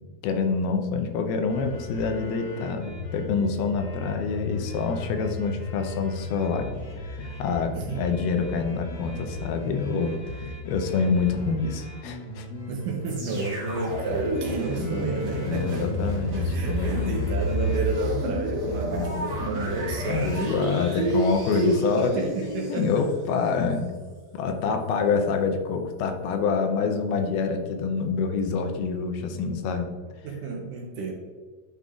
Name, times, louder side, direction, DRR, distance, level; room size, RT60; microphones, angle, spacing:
voice 1, 0.2-6.7 7.1-12.5 15.4-17.2 18.9-19.3 20.0-23.9 24.3-29.9, left 5 dB, 85° left, 5 dB, 2.7 m, -26 dB
sound 1, 1.5-20.4, left 2 dB, 60° left, 1.8 m, -37 dB
voice 2, 7.7-8.1 12.7-15.9 16.4-23.1 30.2-31.1, right 3 dB, 75° right, 1 dB, 2.1 m, -30 dB
sound 2, 13.1-23.1 23.7-23.8, right 1 dB, 45° right, 2.5 m, -31 dB
10.0 x 5.3 x 2.5 m, 1.5 s
omnidirectional pair, 4.4 m